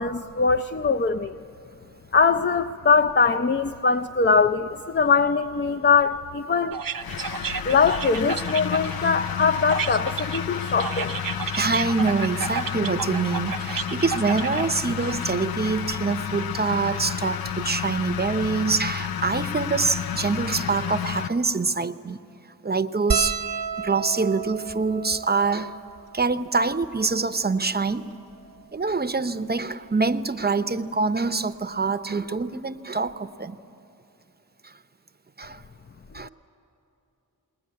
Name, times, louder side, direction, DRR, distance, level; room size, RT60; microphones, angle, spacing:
voice 1, 0.0-1.3 2.1-6.8 7.7-11.2 36.2-36.3, left 5 dB, 30° left, 9 dB, 0.5 m, -22 dB
sound 1, 6.7-15.3, right 6 dB, 70° right, 0.7 m, -33 dB
sound 2, 7.0-21.3, left 9 dB, 90° left, 0.5 m, -31 dB
voice 2, 11.6-22.2 22.6-23.4 23.8-25.8 26.1-28.1 28.7-33.6 34.6-34.7 35.4-35.6 36.1-36.3, right 4 dB, 30° right, 10 dB, 0.7 m, -25 dB
sound 3, 23.1-27.7 28.4-28.5 28.7-28.9 30.2-30.4 31.9-32.0 32.2-32.4, right 6 dB, 85° right, 1.1 m, -32 dB
20.5 x 19.5 x 9.5 m, 2.9 s
wide cardioid pair, 70°, 35 cm